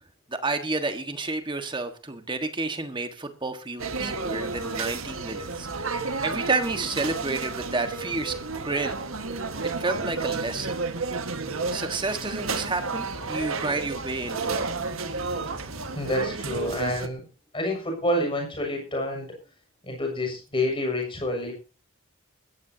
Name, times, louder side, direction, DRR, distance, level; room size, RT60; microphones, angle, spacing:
voice 1, 0.3-8.3 8.6-9.0 9.8-10.7 11.7-14.7 15.7-15.8, right 3 dB, 25° right, 7 dB, 1.5 m, -30 dB
sound 1, 3.8-17.1, right 4 dB, 80° right, 1.6 m, -31 dB
voice 2, 15.9-17.2 17.5-19.3 19.8-21.5, left 1 dB, 25° left, 2 dB, 6.8 m, -28 dB
20.5 x 15.5 x 2.8 m, 0.33 s
head